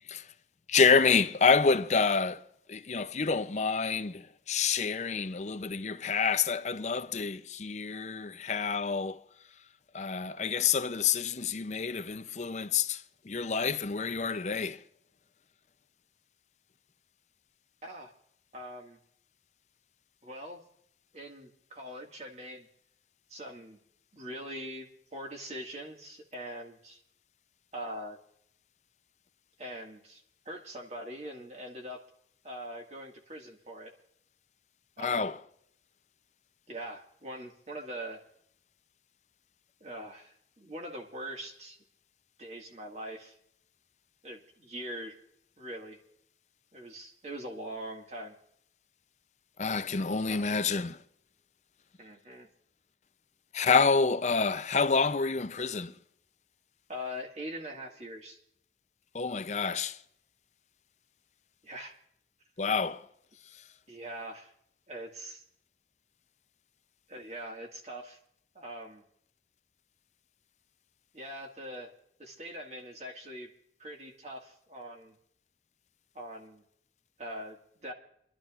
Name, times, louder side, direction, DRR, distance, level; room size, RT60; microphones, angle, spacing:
voice 1, 0.7-2.4 2.7-9.2 9.9-14.8 35.0-35.4 49.6-51.0 53.5-55.9 59.1-60.0 62.6-63.1, left 5 dB, 40° left, 0.5 m, -28 dB
voice 2, 17.8-18.1 18.5-19.0 20.2-20.6 21.1-22.7 23.3-23.8 24.1-27.0 27.7-28.2 29.6-32.0 32.4-33.9 35.0-35.3 36.7-38.2 39.8-41.8 42.4-43.4 44.2-45.2 45.6-46.0 46.7-48.4 50.3-50.5 52.0-52.5 56.9-58.4 61.6-61.9 63.9-64.5 64.9-65.4 67.1-68.2 68.6-69.0 71.1-71.9 72.2-73.5 73.8-75.2 76.1-76.6 77.2-77.9, equal, 40° right, 1.9 m, -42 dB
27.0 x 12.0 x 2.5 m
head